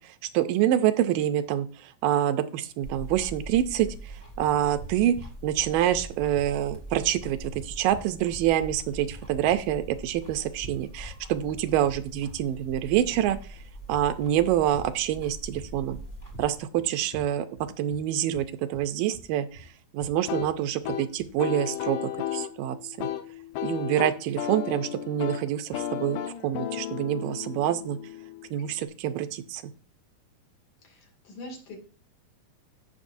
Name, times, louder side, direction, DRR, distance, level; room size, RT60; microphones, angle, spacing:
voice 1, 0.0-5.2 5.4-13.6 13.9-16.0 16.4-17.5 17.8-19.7 19.9-23.1 23.6-28.0 28.5-29.7, right 11 dB, 85° right, 10 dB, 2.3 m, -26 dB
sound 1, 2.8-16.6, right 1 dB, 15° left, 1.2 m, -42 dB
sound 2, 4.8-21.4, right 1 dB, 50° left, 1.6 m, -47 dB
sound 3, 20.3-28.9, left 11 dB, 90° left, 2.4 m, -34 dB
voice 2, 30.8-31.8, left 2 dB, 65° left, 1 dB, 3.8 m, -43 dB
16.0 x 5.9 x 2.6 m, 0.38 s
omnidirectional pair, 3.8 m